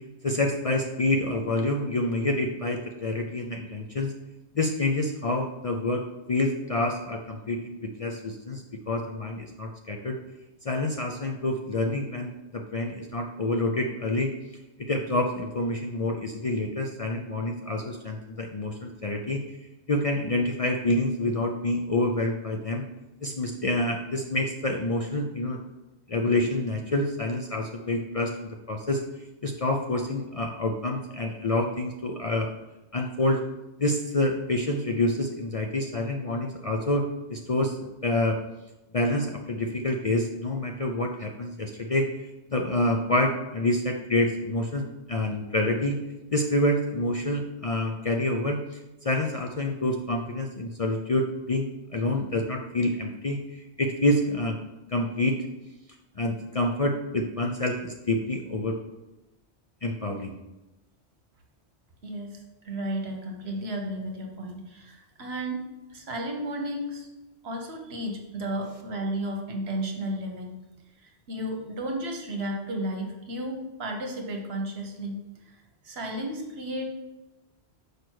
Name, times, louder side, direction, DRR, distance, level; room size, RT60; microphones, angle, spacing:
voice 1, 0.2-4.1 4.5-10.2 10.6-14.3 14.8-19.4 19.9-22.8 23.2-25.6 26.1-29.0 29.4-32.5 32.9-33.4 33.8-37.0 37.3-37.8 38.0-38.4 38.9-42.1 42.5-46.0 46.3-48.6 49.0-54.6 54.9-55.4 56.2-58.8 59.8-60.3, left 1 dB, 45° left, 1 dB, 0.5 m, -27 dB
voice 2, 62.0-67.1 67.4-70.6 71.0-76.9, right 1 dB, 70° right, 3 dB, 1.4 m, -33 dB
6.2 x 4.9 x 4.6 m, 1.0 s
omnidirectional pair, 1.1 m